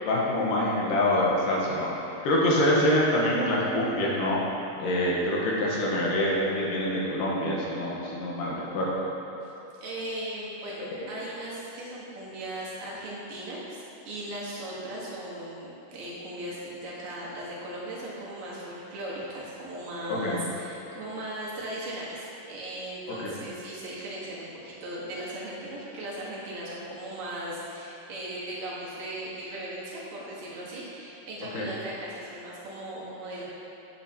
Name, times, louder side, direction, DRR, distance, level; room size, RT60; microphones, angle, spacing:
voice 1, 0.1-1.9 2.2-4.4 4.8-9.1 11.0-11.1 20.1-20.5 23.2-23.3 31.5-31.7, left 1 dB, 80° left, -5 dB, 2.9 m, -25 dB
voice 2, 9.8-33.4, right 1 dB, 75° right, -7 dB, 3.2 m, -38 dB
9.1 x 8.3 x 3.0 m, 2.9 s
omnidirectional pair, 3.9 m